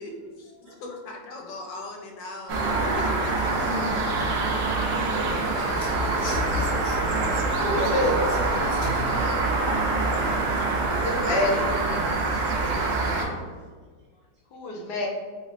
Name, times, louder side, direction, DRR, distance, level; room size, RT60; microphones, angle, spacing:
voice 1, 0.0-3.7 4.2-4.9, left 2 dB, 85° left, 0 dB, 1.3 m, -40 dB
sound 1, 2.5-13.3, right 3 dB, 90° right, 0.7 m, -25 dB
voice 2, 3.6-5.8 6.7-7.9 11.0-11.7 12.4-13.7, equal, 70° right, -5 dB, 1.5 m, -38 dB
Mechanisms / Sawing, 5.8-10.4, left 2 dB, 45° left, 1.0 m, -34 dB
voice 3, 7.6-8.1 9.1-9.5 10.8-11.6 14.5-15.1, left 1 dB, 70° left, -1 dB, 1.1 m, -27 dB
3.4 x 2.4 x 3.2 m, 1.5 s
omnidirectional pair, 2.0 m